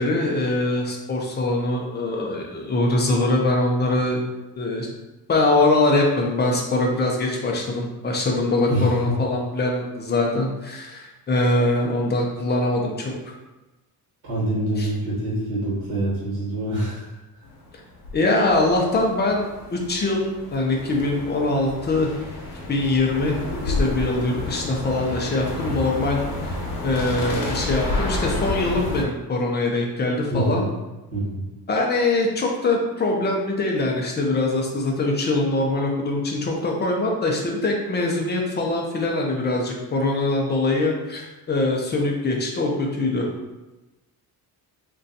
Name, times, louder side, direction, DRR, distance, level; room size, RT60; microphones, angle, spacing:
voice 1, 0.0-4.2 4.6-4.9 5.3-11.0 11.3-13.1 14.8-14.9 18.1-22.1 22.7-23.4 23.6-26.5 26.8-30.7 31.7-43.3, left 2 dB, 25° left, 0 dB, 0.4 m, -23 dB
voice 2, 8.7-9.2 14.2-17.1 30.3-30.7 31.1-31.5, right 1 dB, 65° right, -7 dB, 1.3 m, -25 dB
sound 1, 17.4-29.0, left 2 dB, 85° left, 0.9 m, -30 dB
2.5 x 2.2 x 3.9 m, 1.1 s
cardioid pair, 170°, 39 cm